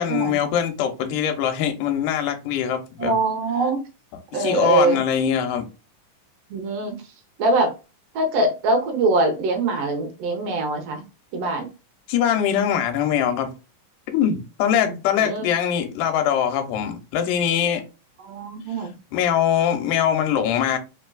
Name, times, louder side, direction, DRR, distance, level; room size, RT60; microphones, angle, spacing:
voice 1, 0.0-3.2 4.4-5.7 12.1-13.5 14.1-17.8 19.1-20.8, left 9 dB, 80° left, 2.3 m, -22 dB
voice 2, 3.0-3.8 4.3-5.0 6.5-7.0 7.4-7.7 8.1-11.0 11.3-11.7 14.8-15.5 18.2-19.0, right 2 dB, 75° right, 1.5 m, -23 dB
5.0 x 3.3 x 2.3 m
omnidirectional pair, 4.0 m